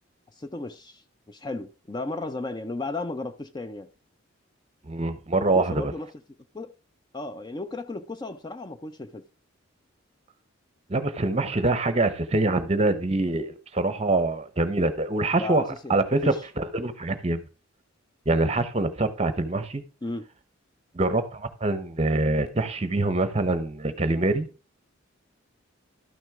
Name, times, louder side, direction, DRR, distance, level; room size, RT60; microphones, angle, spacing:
voice 1, 0.4-3.9 5.4-6.1 6.5-6.7 7.1-9.2 15.4-15.9 16.2-16.5 20.0-20.3, left 2 dB, 20° left, 0.4 m, -34 dB
voice 2, 4.9-5.9 10.9-15.6 15.9-17.4 18.3-19.8 20.9-24.5, right 2 dB, 30° right, 0.8 m, -25 dB
12.5 x 6.2 x 3.6 m
head